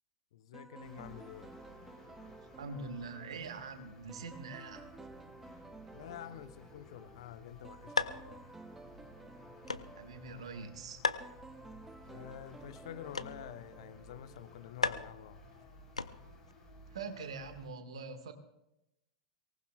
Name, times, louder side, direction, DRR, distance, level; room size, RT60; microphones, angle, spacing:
voice 1, 0.3-1.5 5.9-8.5 12.1-15.5, left 10 dB, 60° left, 11 dB, 1.0 m, -48 dB
sound 1, 0.5-14.8, right 3 dB, 10° right, 0.6 m, -54 dB
sound 2, 0.8-17.7, left 2 dB, 20° left, 5.3 m, -57 dB
voice 2, 2.6-4.9 10.0-11.0 16.9-18.3, right 4 dB, 65° right, 7 dB, 1.8 m, -44 dB
sound 3, 7.2-16.5, left 3 dB, 85° left, 0.6 m, -40 dB
23.5 x 19.0 x 2.4 m, 0.86 s
figure-of-eight pair, 95°, 3 cm